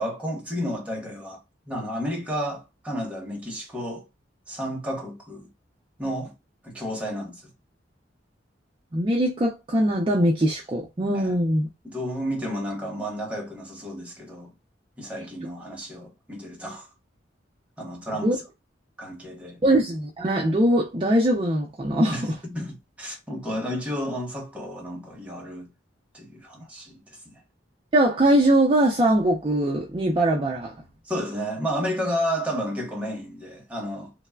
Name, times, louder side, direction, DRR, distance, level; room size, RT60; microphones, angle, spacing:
voice 1, 0.0-4.1 4.5-5.5 6.0-6.3 6.6-7.4 11.1-11.3 11.8-14.5 15.0-16.9 17.8-18.4 19.0-19.6 22.1-25.7 26.1-27.3 31.0-34.1, equal, 5° right, 0.8 m, -32 dB
voice 2, 8.9-11.7 18.2-18.4 19.6-22.2 27.9-30.7, right 1 dB, 30° right, 0.4 m, -21 dB
3.1 x 2.0 x 2.2 m
head